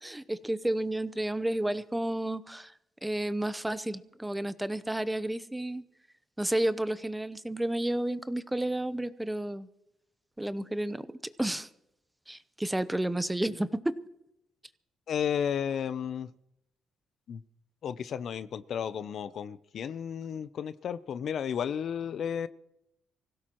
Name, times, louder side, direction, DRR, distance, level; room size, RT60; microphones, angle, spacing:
voice 1, 0.0-2.7 3.0-5.8 6.4-9.7 10.4-11.1 11.4-11.7 12.3-13.9, right 1 dB, 10° right, 14 dB, 0.7 m, -31 dB
voice 2, 15.1-16.3 17.3-17.4 17.8-22.5, left 8 dB, 60° left, 15 dB, 0.5 m, -33 dB
24.5 x 16.5 x 3.0 m, 0.85 s
cardioid pair, 90°, 0 cm